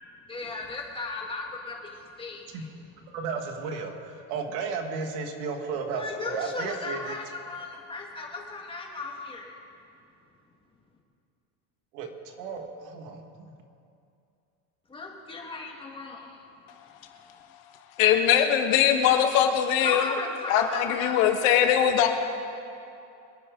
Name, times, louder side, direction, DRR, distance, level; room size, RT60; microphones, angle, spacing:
voice 1, 0.3-1.8 2.2-2.5 5.9-9.6 14.9-16.3 19.8-21.2, left 3 dB, 15° left, -1 dB, 1.9 m, -35 dB
voice 2, 3.1-7.2 11.9-13.5, right 5 dB, 75° right, 4 dB, 2.1 m, -34 dB
voice 3, 18.0-20.1 20.5-22.1, left 9 dB, 80° left, 5 dB, 1.7 m, -21 dB
25.0 x 9.9 x 3.9 m, 2.6 s
cardioid pair, 150°, 41 cm